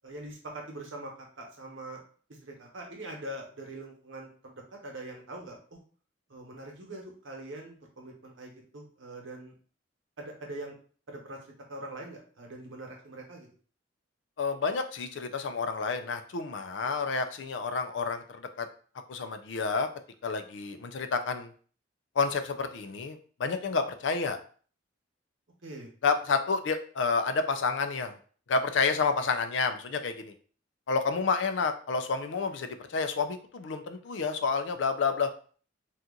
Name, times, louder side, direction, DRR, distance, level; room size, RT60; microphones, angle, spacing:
voice 1, 0.0-1.1 1.4-2.0 2.3-5.8 6.3-9.5 10.2-10.7 11.1-11.4 11.7-13.5 25.6-25.9, right 1 dB, 85° right, 0 dB, 1.0 m, -43 dB
voice 2, 14.4-18.7 19.1-19.9 20.2-21.5 22.2-24.4 26.0-28.1 28.5-30.3 30.9-35.3, left 4 dB, 70° left, 8 dB, 0.4 m, -29 dB
2.8 x 2.4 x 3.7 m, 0.43 s
head